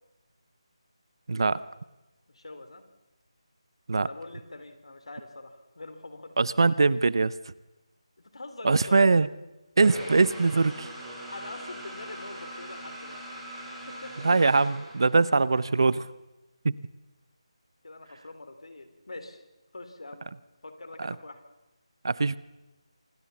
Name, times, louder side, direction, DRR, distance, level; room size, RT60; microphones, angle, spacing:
voice 1, 1.3-1.6 3.9-4.1 6.4-7.3 8.6-9.3 9.8-10.9 14.2-16.1 16.6-16.7 21.0-21.1 22.0-22.4, right 3 dB, 50° right, 19 dB, 0.8 m, -22 dB
voice 2, 2.3-2.8 4.1-6.4 8.2-9.0 11.3-13.3 13.9-14.2 17.8-19.4 19.7-20.3 20.6-21.4, left 2 dB, 65° left, 9 dB, 3.7 m, -44 dB
sound 1, 9.8-15.4, right 1 dB, 5° right, 3.5 m, -41 dB
26.5 x 18.5 x 7.1 m, 1.0 s
figure-of-eight pair, 175°, 3 cm